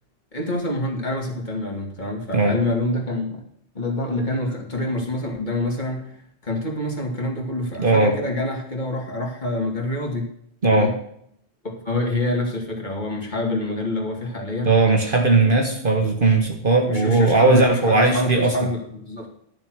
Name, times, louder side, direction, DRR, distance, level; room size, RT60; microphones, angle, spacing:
voice 1, 0.3-3.4 3.7-6.2 6.4-10.3 10.7-10.9 11.6-14.7 16.0-16.1 16.8-19.3, left 1 dB, 45° left, 0 dB, 2.9 m, -26 dB
voice 2, 7.8-8.2 10.6-10.9 14.6-18.5, right 3 dB, 55° right, 4 dB, 1.5 m, -18 dB
11.5 x 6.9 x 6.2 m, 0.70 s
omnidirectional pair, 1.1 m